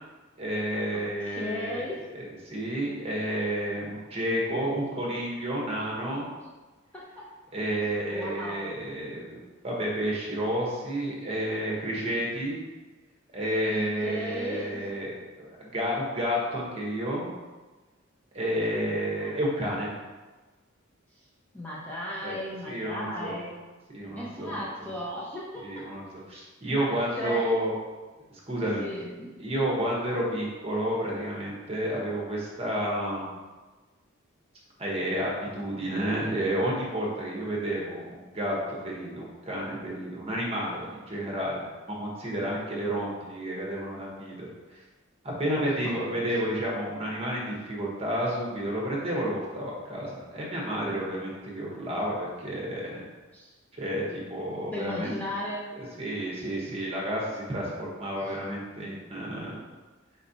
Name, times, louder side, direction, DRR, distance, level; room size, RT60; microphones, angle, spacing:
voice 1, 0.4-1.8 2.1-6.2 7.5-12.6 13.3-17.3 18.3-19.9 22.2-22.4 22.7-23.4 23.9-24.9 25.6-26.0 26.3-27.7 28.3-28.8 29.4-33.2 34.8-44.5 45.2-53.0 53.7-55.1 55.8-59.5, equal, 30° right, -4 dB, 1.0 m, -30 dB
voice 2, 0.9-2.0 6.9-7.3 8.1-8.6 13.6-14.8 19.2-19.4 21.5-23.5 24.2-25.8 26.3-27.5 28.6-29.3 45.8-46.2 53.3-53.5 54.7-55.6 56.4-56.5 58.2-58.3, left 1 dB, 10° left, -6 dB, 0.6 m, -36 dB
4.2 x 4.1 x 2.7 m, 1.3 s
head